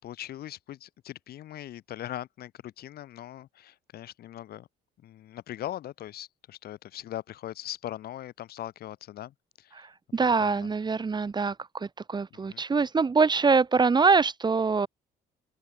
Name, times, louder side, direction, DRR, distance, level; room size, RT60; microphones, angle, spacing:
voice 1, 0.0-4.7 5.0-9.9 10.4-10.7 12.5-12.6, left 12 dB, 65° left, 6.6 m, -40 dB
voice 2, 10.1-14.9, right 4 dB, 25° right, 2.5 m, -24 dB
open air
cardioid pair, 110°, 17 cm